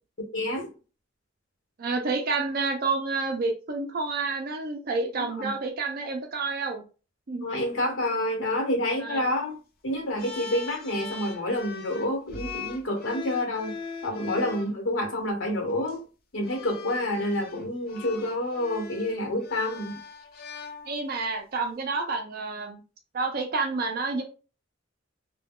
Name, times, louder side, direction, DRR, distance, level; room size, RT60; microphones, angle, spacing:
voice 1, 0.2-0.7 5.1-5.5 7.4-9.5 9.8-13.7 14.0-16.0 16.3-20.0, left 1 dB, 75° left, 3 dB, 1.0 m, -28 dB
voice 2, 1.8-6.8 7.3-7.4 9.0-9.3 20.9-22.8 23.1-24.2, right 3 dB, 50° right, 4 dB, 0.4 m, -29 dB
sound 1, 10.2-14.7 15.7-15.9 16.4-21.3, left 4 dB, 50° left, 0.6 m, -40 dB
2.2 x 2.2 x 3.6 m, 0.34 s
head